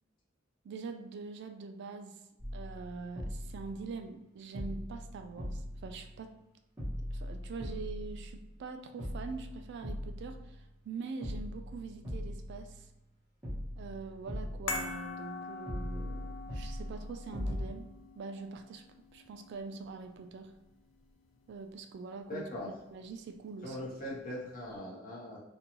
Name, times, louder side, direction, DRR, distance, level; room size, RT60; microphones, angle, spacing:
voice 1, 0.6-2.2 2.5-6.3 7.0-12.9 13.8-17.9 18.2-18.8 19.1-20.5 21.5-23.8, right 4 dB, 60° right, 6 dB, 0.3 m, -44 dB
sound 1, 2.4-4.2 4.5-6.5 6.8-8.6 9.0-10.9 11.2-13.1 13.4-15.3 15.7-17.6, equal, 15° right, 1.0 m, -41 dB
sound 2, 14.7-21.1 21.4-21.5, left 3 dB, 85° left, 0.4 m, -44 dB
voice 2, 22.3-22.7 23.6-25.4, left 1 dB, 45° left, -4 dB, 0.8 m, -40 dB
2.5 x 2.2 x 2.9 m, 0.92 s
head